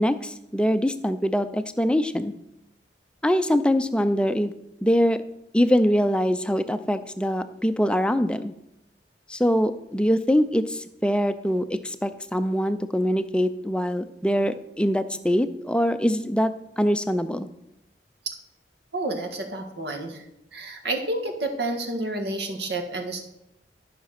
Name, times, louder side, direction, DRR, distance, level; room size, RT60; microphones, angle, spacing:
voice 1, 0.0-2.3 3.2-4.5 4.8-5.2 5.5-8.5 9.3-17.5, equal, 5° left, 11 dB, 0.4 m, -23 dB
voice 2, 18.9-20.2 20.5-23.2, right 2 dB, 75° right, 4 dB, 1.7 m, -30 dB
12.0 x 5.9 x 5.8 m, 0.83 s
head